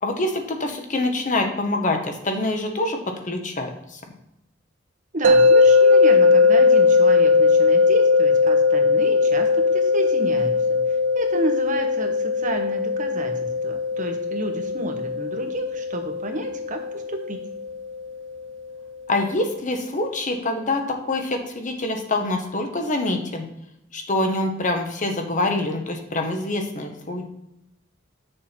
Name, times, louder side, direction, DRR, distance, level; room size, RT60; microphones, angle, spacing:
voice 1, 0.0-3.0 3.2-4.0 19.1-23.4 23.9-27.3, left 2 dB, 40° left, 4 dB, 1.1 m, -25 dB
voice 2, 5.1-10.8 11.1-17.4, right 1 dB, 40° right, 4 dB, 1.1 m, -31 dB
sound 1, 5.2-18.3, left 4 dB, 90° right, 0.7 m, -19 dB
7.7 x 6.7 x 4.4 m, 0.83 s
head